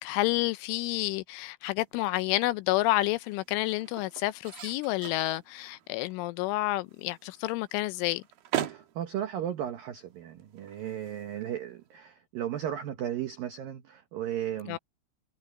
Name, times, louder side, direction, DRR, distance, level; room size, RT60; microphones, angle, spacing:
voice 1, 0.0-8.2 14.7-14.8, left 18 dB, 80° left, 2.9 m, -29 dB
sound 1, 1.6-12.0, right 12 dB, 70° right, 2.3 m, -42 dB
voice 2, 8.6-14.8, right 10 dB, 90° right, 2.0 m, -35 dB
omnidirectional pair, 5.9 m